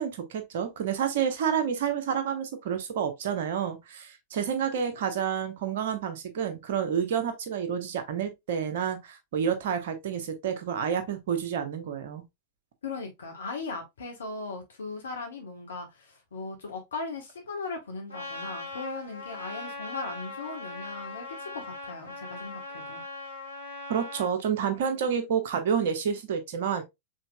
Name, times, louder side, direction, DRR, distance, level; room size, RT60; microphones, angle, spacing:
voice 1, 0.0-12.2 23.9-26.8, right 7 dB, 55° right, 1.0 m, -29 dB
voice 2, 12.8-23.0, left 3 dB, 70° left, 1.4 m, -38 dB
Trumpet, 18.1-24.3, left 2 dB, 85° left, 1.4 m, -40 dB
5.6 x 3.5 x 2.2 m
figure-of-eight pair, 90°, 0 cm